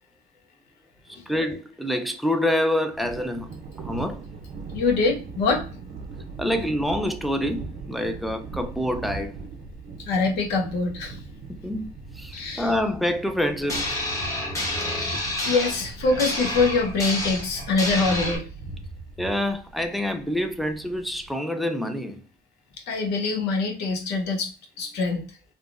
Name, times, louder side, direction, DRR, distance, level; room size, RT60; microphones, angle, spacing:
voice 1, 1.3-3.5 3.8-4.2 6.4-9.4 11.6-11.9 12.2-14.0 19.2-22.2, left 1 dB, ahead, 0.4 m, -26 dB
Thunder, 2.9-21.3, right 3 dB, 55° right, 0.5 m, -40 dB
voice 2, 4.7-5.7 10.0-11.2 12.3-12.7 14.6-18.5 22.9-24.5 24.8-25.2, left 3 dB, 80° left, 0.8 m, -24 dB
sound 1, 13.7-18.4, left 1 dB, 20° left, 1.1 m, -29 dB
3.4 x 2.1 x 2.4 m
cardioid pair, 110°, 17 cm